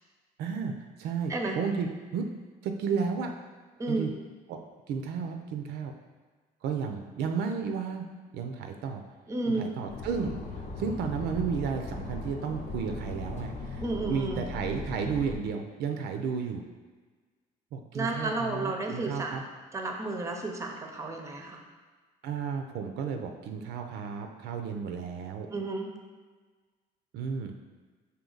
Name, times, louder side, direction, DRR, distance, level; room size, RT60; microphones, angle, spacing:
voice 1, 0.4-2.3 2.6-3.3 3.9-4.1 4.5-4.6 4.9-5.9 6.6-8.0 8.3-9.0 9.5-16.6 17.7-19.4 22.2-25.5 27.1-27.5, right 6 dB, 75° right, 5 dB, 0.5 m, -33 dB
voice 2, 3.8-4.1 9.3-9.7 13.8-14.5 17.9-19.4 19.7-21.6 25.5-25.9, right 2 dB, 15° right, 2 dB, 0.6 m, -32 dB
sound 1, 9.9-15.4, left 3 dB, 45° left, 0.6 m, -38 dB
5.1 x 2.7 x 3.8 m, 1.4 s
cardioid pair, 110°, 17 cm